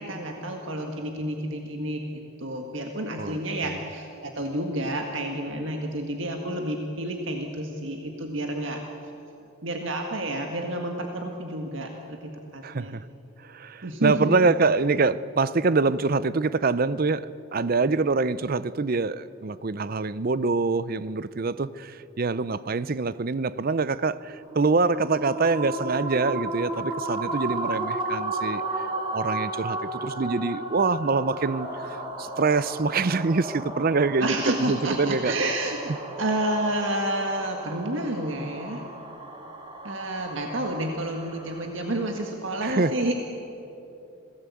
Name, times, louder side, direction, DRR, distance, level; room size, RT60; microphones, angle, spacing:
voice 1, 0.0-8.8 9.6-12.9 13.8-14.4 34.2-38.8 39.8-43.1, right 1 dB, 65° right, 1.8 m, -30 dB
voice 2, 12.6-13.0 13.4-28.9 29.1-35.3 42.6-42.9, right 4 dB, 45° right, 0.6 m, -25 dB
sound 1, 24.4-41.7, right 2 dB, 25° right, 2.8 m, -34 dB
27.0 x 18.0 x 8.5 m
head